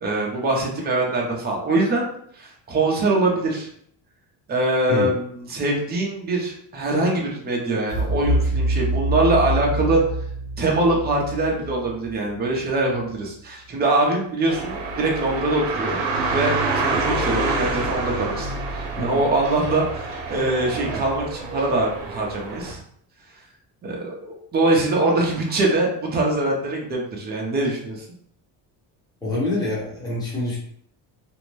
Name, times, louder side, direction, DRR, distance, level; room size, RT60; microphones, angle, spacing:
voice 1, 0.0-2.0 2.3-3.7 4.5-10.0 10.6-16.0 16.3-22.8 23.8-28.0, right 2 dB, 25° right, -1 dB, 0.6 m, -23 dB
sound 1, 7.9-12.8, right 1 dB, 65° left, 0.8 m, -25 dB
sound 2, 14.5-22.7, right 3 dB, 75° right, 0.7 m, -27 dB
voice 2, 29.2-30.6, left 2 dB, 10° left, -7 dB, 1.0 m, -26 dB
2.6 x 2.1 x 3.1 m, 0.66 s
cardioid pair, 150°, 42 cm